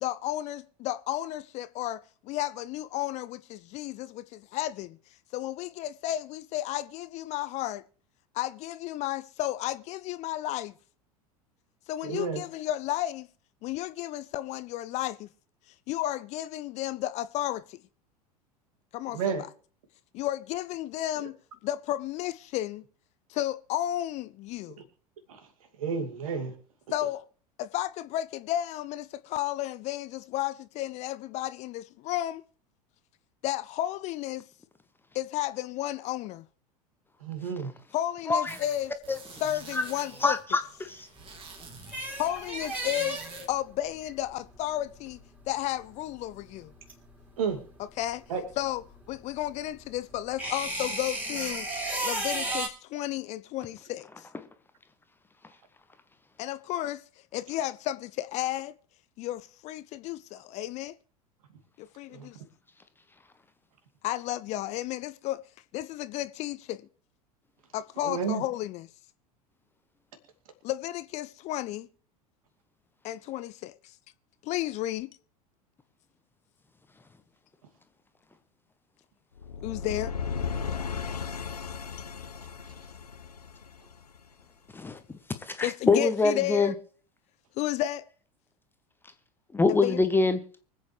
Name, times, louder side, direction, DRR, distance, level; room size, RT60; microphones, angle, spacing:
voice 1, 0.0-5.0 5.3-7.8 8.3-10.7 11.9-13.3 13.6-15.3 15.7-17.8 18.9-19.5 20.1-21.3 21.6-22.8 23.3-24.8 26.9-27.2 27.6-32.4 33.4-34.4 35.1-36.4 37.9-38.9 39.4-40.4 42.2-43.2 43.5-45.2 45.5-46.7 48.0-48.2 48.6-48.8 49.1-51.7 52.0-54.3 56.4-57.0 57.3-58.7 59.2-60.9 61.8-62.4 64.0-65.4 65.7-66.8 67.7-68.9 70.6-71.9 73.0-74.0 74.4-75.1 79.6-80.1 85.6-86.7 87.6-88.0 89.7-90.0, left 14 dB, 35° left, 0.6 m, -32 dB
voice 2, 12.0-12.4 19.1-19.4 21.2-21.3 25.3-25.4 25.8-26.5 37.2-37.7 47.4-47.6 48.3-48.4 62.1-62.3 68.0-68.4, right 6 dB, 60° right, 2.6 m, -31 dB
sound 1, 38.5-43.5, right 5 dB, 25° right, 2.5 m, -48 dB
voice 3, 40.2-41.1 84.7-85.0 85.5-86.7 89.5-90.4, left 3 dB, 10° left, 1.0 m, -24 dB
sound 2, 41.2-47.8 48.0-52.7, right 1 dB, 10° right, 3.2 m, -34 dB
sound 3, 79.4-84.4, left 6 dB, 75° left, 0.7 m, -35 dB
24.5 x 8.4 x 3.3 m
figure-of-eight pair, 80°, 20 cm